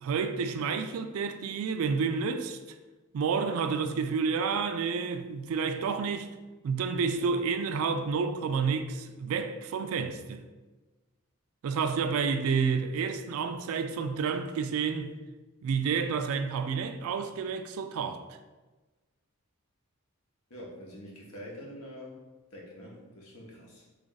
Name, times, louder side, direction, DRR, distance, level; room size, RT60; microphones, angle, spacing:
voice 1, 0.0-2.6 3.1-6.3 6.6-10.4 11.6-15.1 15.6-18.2, right 5 dB, 75° right, 0.3 m, -30 dB
voice 2, 20.5-22.2 22.5-23.9, equal, 85° left, 1.0 m, -45 dB
3.3 x 2.5 x 3.9 m
head